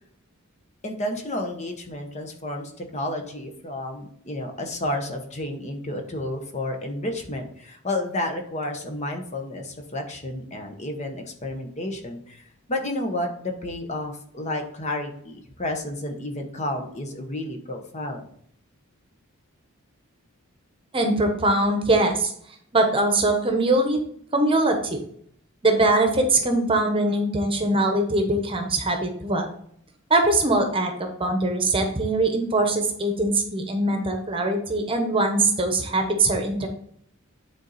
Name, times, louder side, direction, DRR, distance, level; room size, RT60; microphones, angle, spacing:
voice 1, 0.8-18.3, left 1 dB, 30° left, 4 dB, 1.0 m, -31 dB
voice 2, 20.9-22.3 22.7-24.0 24.3-25.0 25.6-29.5 30.1-36.7, right 2 dB, 25° right, 4 dB, 1.0 m, -22 dB
9.6 x 4.0 x 4.1 m, 0.66 s
head